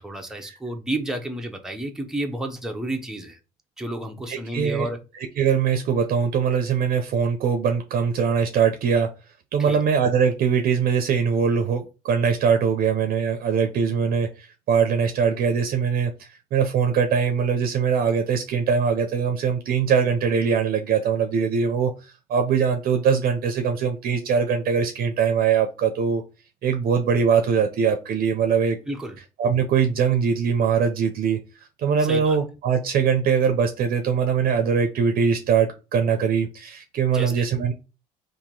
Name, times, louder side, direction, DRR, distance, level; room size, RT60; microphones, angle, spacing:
voice 1, 0.0-3.4 3.8-5.0 9.7-9.8 28.9-29.2 32.0-32.4 37.1-37.4, right 1 dB, 5° right, 0.6 m, -31 dB
voice 2, 4.3-4.9 5.1-9.1 9.5-26.2 26.6-28.8 29.4-31.4 31.8-37.7, right 6 dB, 60° right, 0.6 m, -22 dB
2.8 x 2.6 x 3.8 m
cardioid pair, 110°, 17 cm